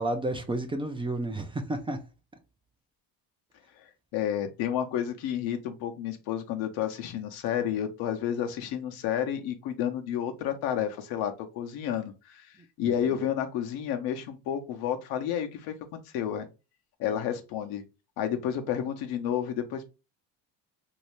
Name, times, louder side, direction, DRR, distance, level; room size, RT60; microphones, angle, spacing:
voice 1, 0.0-2.0 12.8-12.9, right 1 dB, 15° right, 0.4 m, -31 dB
voice 2, 4.1-12.5 12.8-16.5 17.0-17.8 18.2-19.8, left 9 dB, 75° left, 0.8 m, -31 dB
3.1 x 2.7 x 3.1 m
cardioid pair, 105°, 37 cm